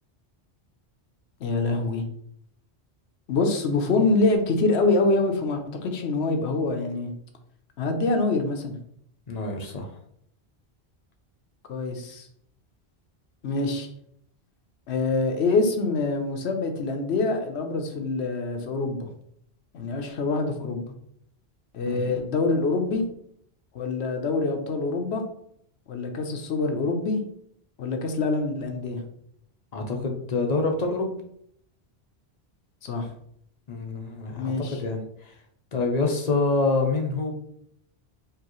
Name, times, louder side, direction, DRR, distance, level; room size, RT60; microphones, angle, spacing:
voice 1, 1.4-2.0 3.3-7.1 7.8-8.8 11.7-12.3 13.4-13.9 14.9-19.1 19.7-20.9 21.7-23.0 23.7-25.2 25.9-27.2 27.8-29.0 32.8-33.1 34.4-34.8, left 3 dB, 85° left, 5 dB, 1.0 m, -25 dB
voice 2, 9.3-9.9 21.9-22.1 29.7-31.1 33.7-34.5 34.8-35.0 35.7-37.3, left 3 dB, 45° left, 2 dB, 0.7 m, -26 dB
4.7 x 2.9 x 3.0 m, 0.68 s
omnidirectional pair, 1.1 m